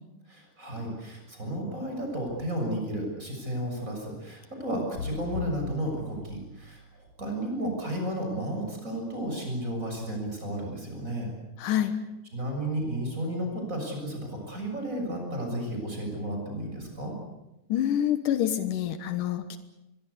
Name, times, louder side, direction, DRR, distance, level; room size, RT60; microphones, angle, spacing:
voice 1, 0.3-11.3 12.3-17.1, right 1 dB, 25° right, 2 dB, 7.2 m, -33 dB
sound 1, 5.0-7.1, left 5 dB, 65° left, 3.9 m, -38 dB
voice 2, 11.6-11.9 17.7-19.6, left 11 dB, 85° left, 10 dB, 2.8 m, -27 dB
24.0 x 23.0 x 8.4 m, 0.93 s
omnidirectional pair, 3.6 m